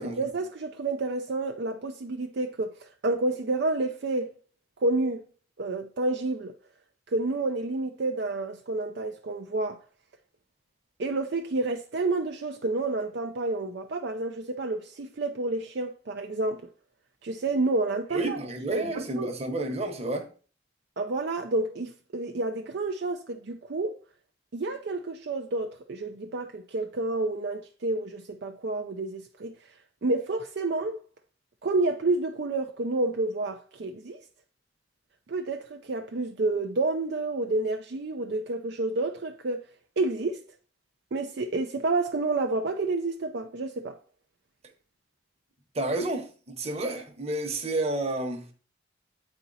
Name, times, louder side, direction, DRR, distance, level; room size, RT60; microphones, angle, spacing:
voice 1, 0.0-4.3 4.8-5.2 5.6-6.5 7.1-9.8 11.0-16.6 17.2-18.4 18.7-19.3 21.0-24.0 24.5-29.6 30.0-31.0 31.6-34.2 35.3-39.6 40.0-40.4 41.1-44.0, right 2 dB, 65° right, 0.5 m, -29 dB
voice 2, 18.1-20.3 45.7-48.4, right 2 dB, 35° right, 1.1 m, -30 dB
8.1 x 4.4 x 4.0 m
head